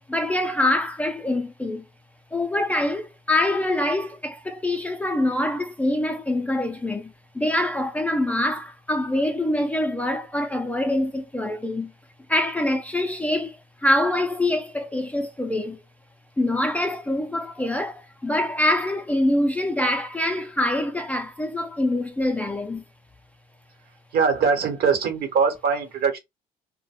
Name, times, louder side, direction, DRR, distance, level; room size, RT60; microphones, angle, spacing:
voice 1, 0.0-1.8 2.3-11.9 12.3-15.8 16.4-22.8, left 1 dB, 10° left, 0.4 m, -25 dB
voice 2, 24.1-26.2, right 5 dB, 65° right, 1.0 m, -22 dB
2.3 x 2.1 x 3.1 m
cardioid pair, 110°, 17 cm